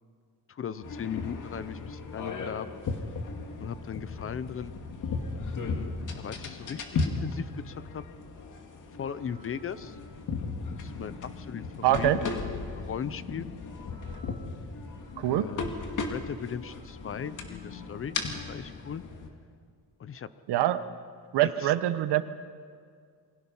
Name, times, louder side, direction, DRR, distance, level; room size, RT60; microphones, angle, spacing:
voice 1, 0.5-2.7 3.6-4.7 5.5-8.0 9.0-10.0 10.8-12.4 12.7-13.5 15.2-15.6 16.1-18.2 18.5-19.0 20.0-20.3 21.6-21.7, left 8 dB, 35° left, 15 dB, 0.7 m, -38 dB
sound 1, 0.8-19.3, left 4 dB, 50° left, 2.4 m, -36 dB
voice 2, 11.8-12.2 15.2-15.5 20.5-20.8 21.3-22.2, right 13 dB, 85° right, 12 dB, 1.2 m, -24 dB
28.5 x 23.0 x 5.6 m, 2.1 s
cardioid pair, 155°, 40 cm